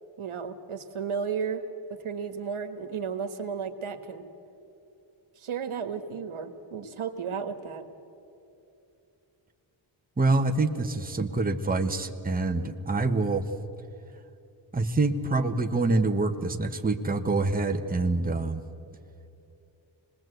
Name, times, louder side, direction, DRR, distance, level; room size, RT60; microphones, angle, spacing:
voice 1, 0.2-1.6 2.0-4.2 5.4-7.8, right 6 dB, 80° right, 8 dB, 1.6 m, -33 dB
voice 2, 10.2-13.4 14.7-18.6, right 3 dB, 15° right, 5 dB, 1.1 m, -26 dB
26.5 x 20.0 x 7.9 m, 2.7 s
wide cardioid pair, 120°, 49 cm